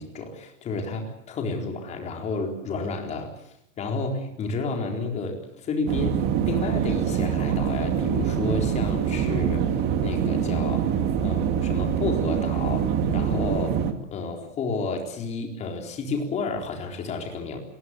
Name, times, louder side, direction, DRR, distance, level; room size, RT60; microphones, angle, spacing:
voice 1, 0.0-10.9 11.2-17.6, left 3 dB, 20° left, 3 dB, 4.2 m, -31 dB
sound 1, 5.9-13.9, right 8 dB, 25° right, 2.1 m, -25 dB
26.0 x 20.5 x 8.0 m, 0.78 s
hypercardioid pair, 160°, 38 cm